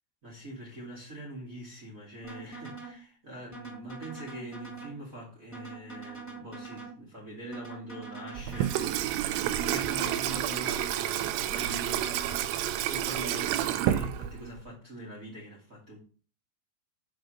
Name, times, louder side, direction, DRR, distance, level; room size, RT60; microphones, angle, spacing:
voice 1, 0.2-12.4 12.8-16.0, right 1 dB, 25° right, 2.1 m, -43 dB
sound 1, 2.2-3.0 3.5-5.0 5.5-7.0 7.5-9.0 9.5-11.0 11.5-12.4, right 4 dB, 20° left, 0.4 m, -43 dB
Water tap faucet / Sink (filling or washing), 8.4-14.6, right 11 dB, 90° right, 3.4 m, -30 dB
7.8 x 5.2 x 6.5 m
omnidirectional pair, 5.7 m